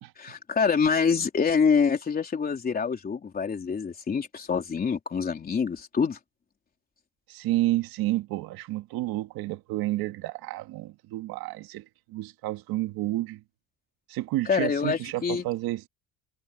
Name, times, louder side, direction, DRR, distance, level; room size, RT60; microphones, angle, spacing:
voice 1, 0.2-6.2 14.5-15.4, left 6 dB, 25° left, 3.6 m, -26 dB
voice 2, 7.3-11.8 12.1-13.4 14.1-15.9, right 17 dB, 70° right, 2.0 m, -30 dB
cardioid pair, 165°, 38 cm